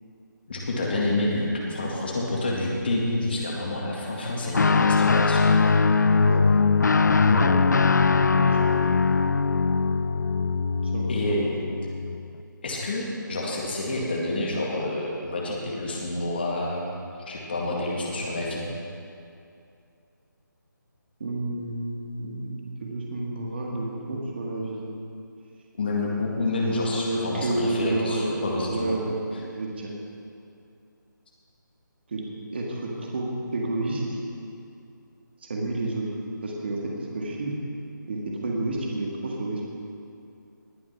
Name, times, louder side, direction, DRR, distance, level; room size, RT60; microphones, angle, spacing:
voice 1, 0.5-5.8 11.1-11.5 12.6-18.6 25.8-29.0, left 2 dB, 30° left, -3 dB, 2.0 m, -28 dB
Guitar, 4.5-12.2, left 4 dB, 60° left, 0.5 m, -21 dB
voice 2, 7.2-7.6 8.3-8.7 10.8-11.4 21.2-24.8 26.6-28.3 28.7-29.2 29.5-29.9 32.1-32.2 32.5-34.2 35.5-36.1 36.4-37.5 38.1-39.7, right 2 dB, 30° right, -2 dB, 1.9 m, -30 dB
20.0 x 7.4 x 5.9 m, 2.5 s
hypercardioid pair, 175°, 11 cm